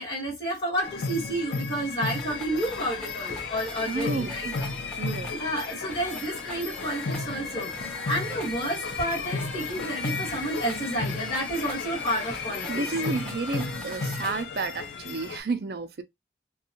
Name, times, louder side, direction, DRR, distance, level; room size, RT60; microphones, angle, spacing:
voice 1, 0.0-4.5 5.3-12.9, right 1 dB, 25° left, 1.5 m, -31 dB
sound 1, 0.8-15.4, left 4 dB, 85° left, 0.5 m, -34 dB
sound 2, 2.1-14.4, left 1 dB, 5° left, 0.5 m, -41 dB
voice 2, 3.9-4.6 5.0-5.3 12.7-16.0, right 3 dB, 60° right, 0.4 m, -31 dB
2.6 x 2.3 x 2.6 m
head